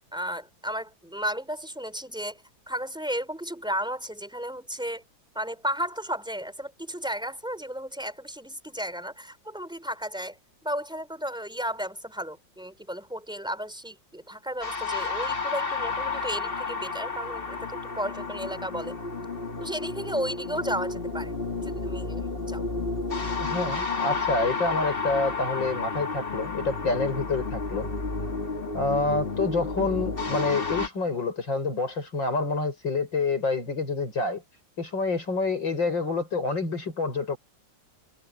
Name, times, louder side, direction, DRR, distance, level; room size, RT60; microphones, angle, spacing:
voice 1, 0.1-2.4 2.7-5.0 5.3-19.0 19.6-21.3 21.6-22.7, equal, ahead, 3.9 m, -34 dB
sound 1, 14.6-30.9, left 4 dB, 30° left, 2.3 m, -31 dB
voice 2, 23.4-27.9 28.7-34.4 34.8-37.4, left 3 dB, 80° left, 8.5 m, -27 dB
omnidirectional pair, 2.0 m